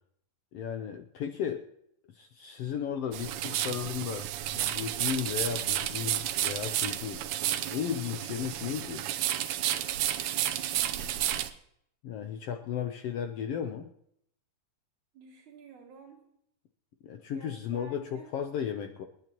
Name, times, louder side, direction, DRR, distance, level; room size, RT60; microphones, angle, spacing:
voice 1, 0.5-1.6 2.1-9.0 12.0-13.9 17.0-19.0, left 8 dB, 75° left, 6 dB, 1.5 m, -35 dB
sound 1, 3.1-11.5, right 12 dB, 85° right, 2.2 m, -31 dB
voice 2, 10.4-11.2 15.1-16.2 17.3-18.3, right 4 dB, 70° right, -3 dB, 4.2 m, -51 dB
28.0 x 9.9 x 3.0 m, 0.73 s
omnidirectional pair, 3.4 m